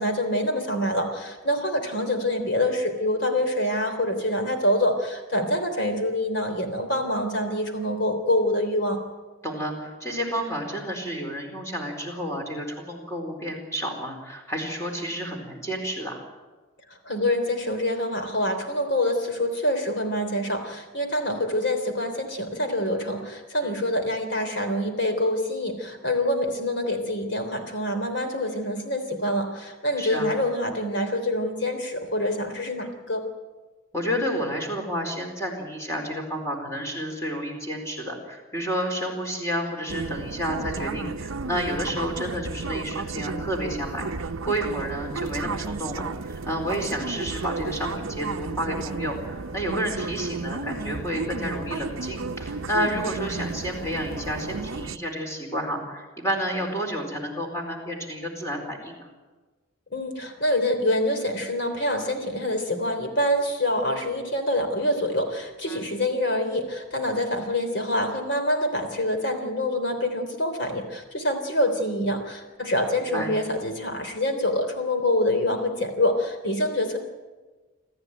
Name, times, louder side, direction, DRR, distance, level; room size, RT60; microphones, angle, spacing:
voice 1, 0.0-9.0 17.0-33.3 59.9-77.0, left 1 dB, 55° left, 5 dB, 3.5 m, -26 dB
voice 2, 9.4-16.2 23.6-23.8 30.0-30.3 33.9-44.1 44.4-59.1 65.7-65.8 73.1-73.3, equal, 15° left, 2 dB, 4.4 m, -30 dB
sound 1, 39.9-55.0, right 4 dB, 70° right, 0.7 m, -33 dB
27.0 x 14.0 x 9.1 m, 1.3 s
head